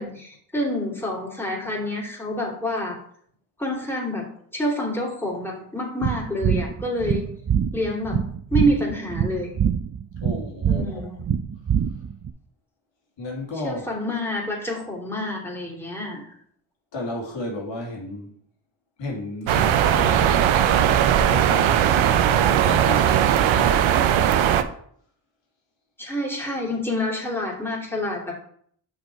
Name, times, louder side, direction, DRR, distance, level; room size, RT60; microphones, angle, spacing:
voice 1, 0.0-3.0 3.6-7.3 7.7-8.2 8.5-9.5 10.7-11.3 13.6-16.3 26.0-28.3, equal, 5° left, -2 dB, 2.8 m, -27 dB
sound 1, 6.0-12.3, right 8 dB, 35° right, 0.6 m, -25 dB
voice 2, 10.2-11.1 13.2-13.8 16.9-18.3 19.0-20.4 21.2-23.1 23.4-24.2, left 2 dB, 70° left, -2 dB, 2.3 m, -33 dB
sound 2, 19.5-24.6, right 10 dB, 80° right, 0.7 m, -19 dB
6.1 x 4.9 x 4.6 m, 0.63 s
supercardioid pair, 50°, 46 cm